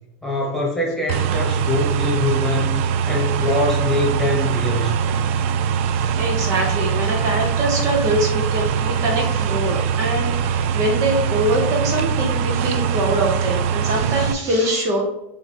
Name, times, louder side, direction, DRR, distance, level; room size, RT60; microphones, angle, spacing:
voice 1, 0.2-2.8 3.1-5.1, left 2 dB, 5° left, -3 dB, 1.4 m, -23 dB
sound 1, 1.1-14.3, right 7 dB, 70° right, 0.3 m, -22 dB
voice 2, 5.9-15.0, right 1 dB, 45° right, 0 dB, 1.1 m, -23 dB
3.9 x 2.8 x 4.5 m, 0.87 s
supercardioid pair, 125°, 7 cm